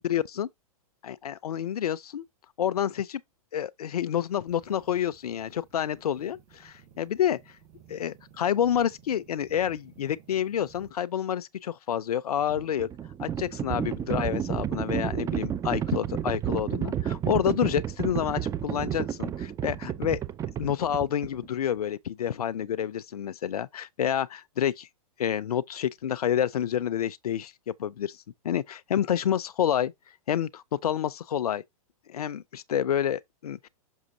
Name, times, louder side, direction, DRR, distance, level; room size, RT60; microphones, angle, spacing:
voice 1, 0.0-0.5 1.0-2.2 2.6-3.2 3.5-7.4 7.9-12.9 13.2-20.2 20.6-24.9 25.2-27.5 27.8-28.2 28.4-29.9 30.3-31.6 32.1-33.7, left 10 dB, 85° left, 0.5 m, -28 dB
sound 1, 4.5-10.9, right 8 dB, 50° right, 3.6 m, -56 dB
Livestock farm animals working animals, 12.4-21.5, right 9 dB, 15° right, 0.5 m, -31 dB
6.2 x 6.0 x 2.7 m
hypercardioid pair, 120°, 19 cm